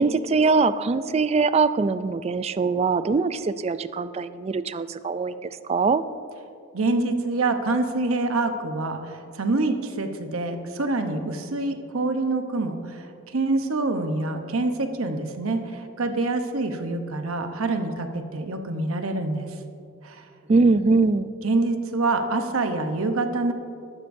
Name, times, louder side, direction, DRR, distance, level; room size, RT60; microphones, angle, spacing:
voice 1, 0.0-6.0 20.5-21.3, right 4 dB, 30° right, 14 dB, 0.3 m, -22 dB
voice 2, 6.7-19.5 20.0-20.2 21.4-23.5, right 2 dB, 85° right, 6 dB, 0.9 m, -26 dB
14.0 x 12.0 x 2.7 m, 2.5 s
head